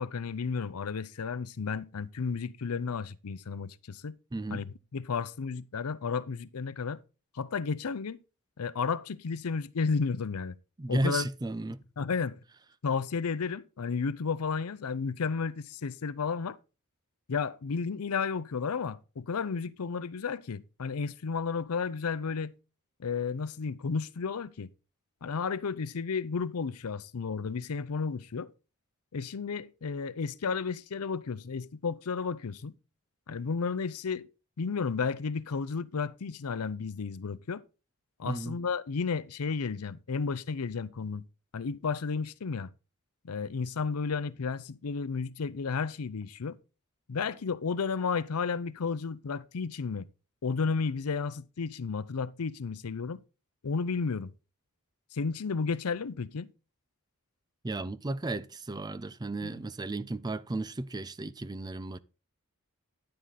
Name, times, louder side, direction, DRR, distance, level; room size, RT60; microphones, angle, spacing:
voice 1, 0.0-4.2 4.5-7.0 7.4-8.2 8.6-10.6 10.9-11.2 12.0-12.4 12.8-16.6 17.3-22.5 23.0-24.7 25.2-28.5 29.1-32.8 33.3-34.3 34.6-37.6 38.2-41.2 41.5-42.7 43.2-46.6 47.1-50.1 50.4-53.2 53.6-54.3 55.1-56.5 59.4-59.6, left 5 dB, 85° left, 0.6 m, -32 dB
voice 2, 4.3-4.7 10.8-11.8 38.2-38.6 57.6-62.0, right 2 dB, 20° right, 0.5 m, -34 dB
10.5 x 7.4 x 4.1 m
head